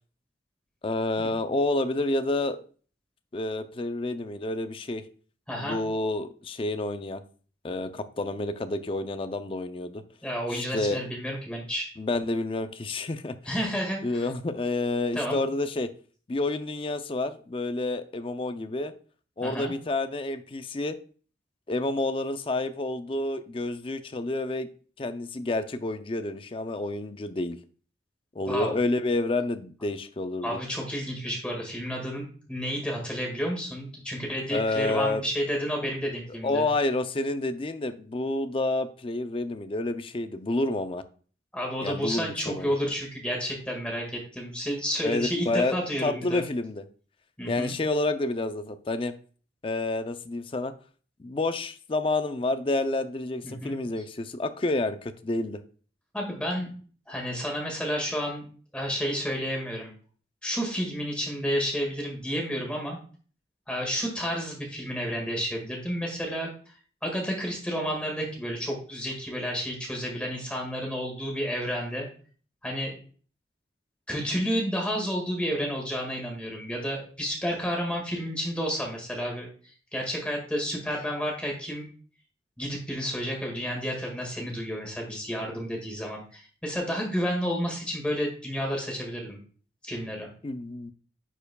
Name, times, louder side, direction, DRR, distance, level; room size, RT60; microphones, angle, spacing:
voice 1, 0.8-2.6 3.3-5.0 5.5-7.2 7.6-10.0 10.5-11.0 12.0-13.4 14.0-15.9 16.3-18.9 19.4-21.0 21.7-24.7 25.0-27.6 28.4-30.6 34.5-35.2 36.4-41.0 41.8-42.7 45.0-45.8 46.0-46.8 47.4-49.1 49.6-50.7 51.2-55.6 90.4-90.9, left 2 dB, 30° left, 0.4 m, -29 dB
voice 2, 5.5-5.8 10.2-11.9 13.4-14.3 15.1-15.4 19.4-19.7 28.5-28.8 30.4-36.7 41.5-46.5 47.4-47.7 53.4-53.7 56.1-56.8 57.1-58.5 58.7-59.9 60.4-63.0 63.7-66.5 67.0-72.1 72.6-73.0 74.1-79.5 79.9-81.9 82.6-89.4 89.8-90.3, equal, 5° left, 1.8 m, -31 dB
9.9 x 4.5 x 2.3 m
head